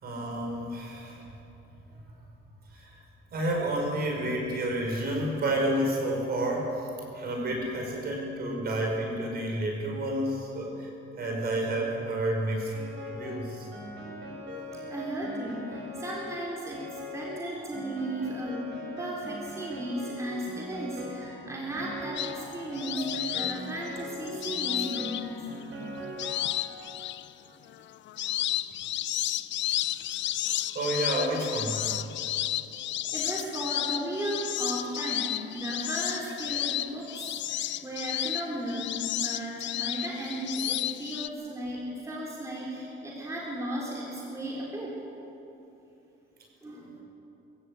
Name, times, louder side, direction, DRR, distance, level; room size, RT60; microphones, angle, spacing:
voice 1, 0.0-1.3 1.9-2.0 2.7-3.0 3.3-10.9 11.2-12.7 13.1-13.7 30.7-31.9, right 1 dB, 50° right, 0 dB, 5.4 m, -30 dB
Piano, 12.7-27.1, equal, 70° right, 5.4 m, -40 dB
voice 2, 14.9-16.8 17.1-25.3 33.1-45.0 46.6-47.0, right 1 dB, 15° right, -4 dB, 3.8 m, -35 dB
sound 1, 22.2-25.6 26.2-27.3 27.7-41.3, left 13 dB, 65° left, 0.5 m, -32 dB
22.0 x 16.0 x 8.5 m, 2.9 s
cardioid pair, 160°, 20 cm